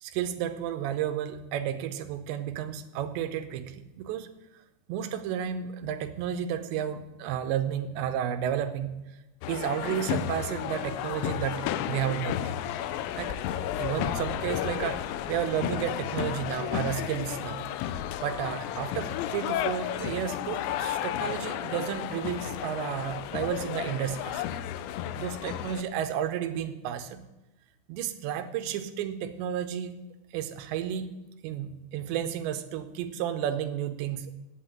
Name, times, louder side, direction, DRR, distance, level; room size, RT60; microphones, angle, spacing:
voice 1, 0.0-4.3 4.9-9.0 9.5-12.5 13.2-13.4 13.8-17.6 18.2-24.4 25.2-27.2 27.9-29.9 30.3-31.1 31.4-34.3, right 9 dB, 80° right, 9 dB, 2.8 m, -32 dB
sound 1, 9.4-25.8, left 11 dB, 80° left, 2.7 m, -33 dB
8.5 x 8.1 x 9.1 m, 0.98 s
omnidirectional pair, 5.4 m